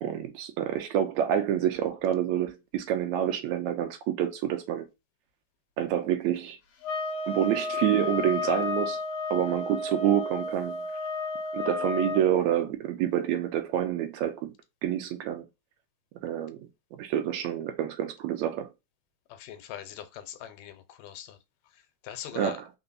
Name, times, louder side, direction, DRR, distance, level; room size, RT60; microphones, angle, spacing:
voice 1, 0.0-4.9 5.8-6.6 7.3-9.0 9.3-10.8 11.5-14.5 14.8-15.4 16.2-16.6 16.9-18.7 22.3-22.7, right 10 dB, 80° right, 1.7 m, -28 dB
sound 1, 6.8-12.3, left 3 dB, 70° left, 1.8 m, -32 dB
voice 2, 19.4-21.4 22.0-22.6, left 10 dB, 85° left, 2.2 m, -41 dB
4.4 x 4.0 x 2.5 m
omnidirectional pair, 3.8 m